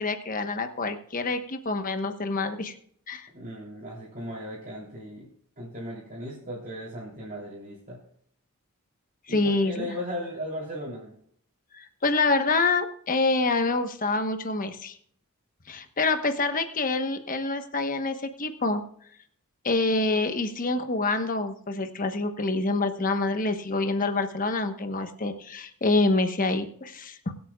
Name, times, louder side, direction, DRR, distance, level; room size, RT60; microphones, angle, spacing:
voice 1, 0.0-2.7 3.1-3.3 9.3-9.9 11.7-15.0 15.7-18.8 19.6-27.3, left 3 dB, 40° left, 7 dB, 1.1 m, -26 dB
voice 2, 3.3-5.3 5.6-8.0 9.3-11.1, equal, 40° right, -5 dB, 3.2 m, -37 dB
22.0 x 8.3 x 2.4 m, 0.63 s
head